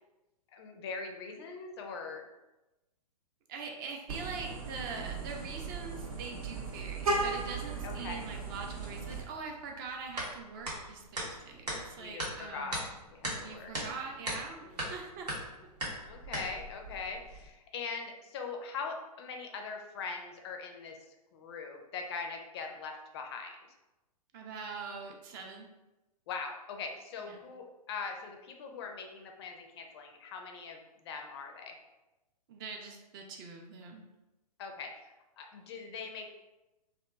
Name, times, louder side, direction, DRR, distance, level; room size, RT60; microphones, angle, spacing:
voice 1, 0.5-2.3 7.8-8.3 12.0-12.8 13.1-13.7 14.6-14.9 16.1-23.6 26.3-31.8 34.6-36.3, left 5 dB, 40° left, 3 dB, 0.4 m, -42 dB
voice 2, 3.5-12.8 13.4-15.3 24.3-25.7 27.2-27.4 32.5-34.0, right 4 dB, 35° right, 2 dB, 0.4 m, -43 dB
Vehicle horn car horn honking, 4.1-9.2, right 3 dB, 65° right, 0.8 m, -36 dB
sound 1, 8.5-17.5, right 1 dB, 90° right, 0.9 m, -40 dB
2.7 x 2.3 x 2.2 m, 1.0 s
hypercardioid pair, 120°, 20 cm